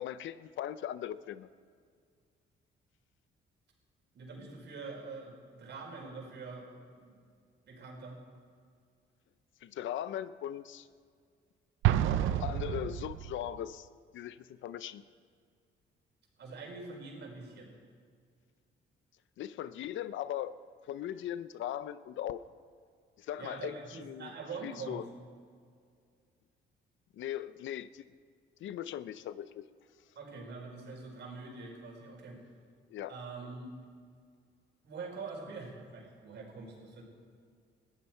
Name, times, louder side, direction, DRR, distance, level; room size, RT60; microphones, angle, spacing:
voice 1, 0.0-1.5 9.6-10.9 12.4-13.9 14.1-15.0 19.4-20.5 20.9-22.4 23.2-24.3 24.6-25.1 27.1-28.1 28.6-29.7 32.9-33.1, left 11 dB, 75° left, 15 dB, 0.6 m, -39 dB
voice 2, 4.1-7.1 7.7-8.2 12.0-12.9 16.4-17.7 23.4-25.0 30.1-32.4 33.1-33.7 34.8-37.0, right 4 dB, 60° right, 0 dB, 4.8 m, -44 dB
Explosion, 11.8-13.6, right 12 dB, 85° right, 0.7 m, -29 dB
20.5 x 14.5 x 4.5 m, 2.1 s
cardioid pair, 90°, 20 cm